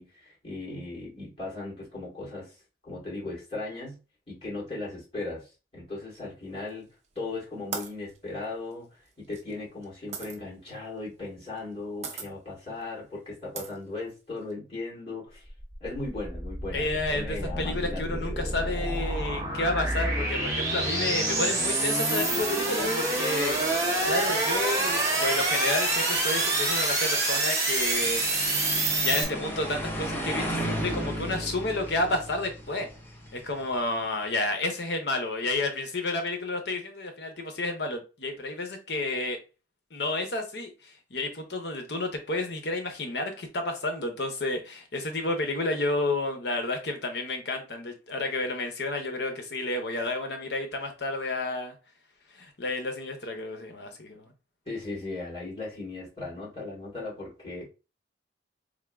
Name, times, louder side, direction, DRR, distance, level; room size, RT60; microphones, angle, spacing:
voice 1, 0.0-2.5 2.8-4.0 4.3-6.9 7.2-15.5 15.8-18.3 54.7-57.7, left 2 dB, 30° left, 2.0 m, -37 dB
sound 1, 6.7-7.2 7.7-10.4 11.4-11.7 12.0-12.3 12.8-12.9 13.5-14.5, right 5 dB, 40° right, 0.7 m, -39 dB
sound 2, 15.5-29.2, right 2 dB, 15° right, 1.0 m, -27 dB
voice 2, 16.7-23.6 24.0-28.2 28.9-32.9 33.3-39.4 39.9-51.8 52.3-54.3, left 2 dB, 60° left, 0.8 m, -31 dB
sound 3, 27.8-33.9, equal, 10° left, 0.7 m, -35 dB
3.6 x 2.2 x 3.5 m
head